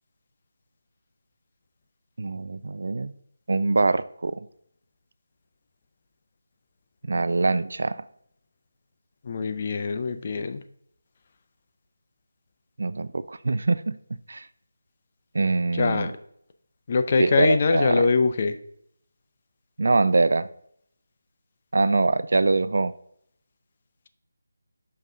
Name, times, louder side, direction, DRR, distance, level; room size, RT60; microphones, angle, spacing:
voice 1, 2.2-3.1 3.5-4.5 7.1-8.0 12.8-14.0 14.3-14.5 15.3-16.1 17.2-18.0 19.8-20.5 21.7-22.9, right 3 dB, 65° right, 15 dB, 0.3 m, -23 dB
voice 2, 9.2-10.6 15.7-16.1 16.9-18.6, left 4 dB, 35° left, 9 dB, 0.4 m, -23 dB
5.3 x 3.7 x 5.4 m, 0.69 s
figure-of-eight pair, 170°, 0 cm